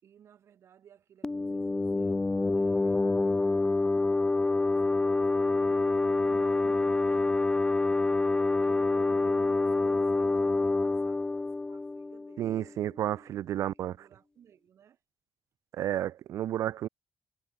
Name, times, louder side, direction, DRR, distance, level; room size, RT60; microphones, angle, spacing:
voice 1, 0.0-2.3 2.6-3.2 4.2-5.8 6.2-7.4 8.6-12.6 13.6-15.0, right 9 dB, 60° right, 7.4 m, -57 dB
sound 1, 1.2-12.7, left 3 dB, 15° left, 0.6 m, -27 dB
voice 2, 12.4-14.0 15.7-16.9, right 12 dB, 80° right, 0.5 m, -31 dB
cardioid pair, 150°, 5 cm